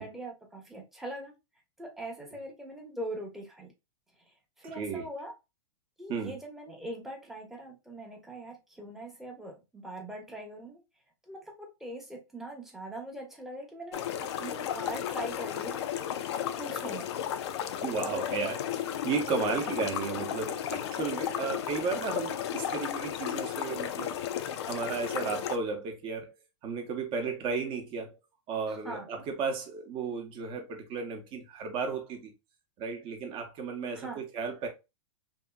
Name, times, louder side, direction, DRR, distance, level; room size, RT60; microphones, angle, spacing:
voice 1, 0.0-1.3 1.8-3.7 4.3-5.3 6.0-10.8 11.2-15.8 16.4-17.1 28.7-29.1 33.9-34.2, right 1 dB, ahead, 0.8 m, -42 dB
sound 1, 13.9-25.6, left 10 dB, 65° left, 0.4 m, -34 dB
voice 2, 17.8-24.2 24.7-26.3 26.6-28.2 28.5-32.3 32.8-34.7, right 5 dB, 35° right, 0.8 m, -34 dB
2.8 x 2.7 x 2.2 m
hypercardioid pair, 125°, 15 cm